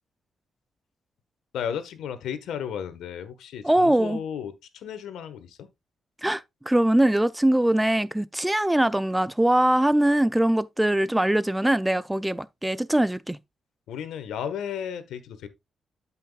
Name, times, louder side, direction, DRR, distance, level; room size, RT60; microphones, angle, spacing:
voice 1, 1.5-5.7 13.9-15.5, left 8 dB, 85° left, 1.3 m, -34 dB
voice 2, 3.6-4.2 6.2-13.4, right 1 dB, 10° right, 0.5 m, -22 dB
12.5 x 5.8 x 2.3 m
cardioid pair, 70°, 0 cm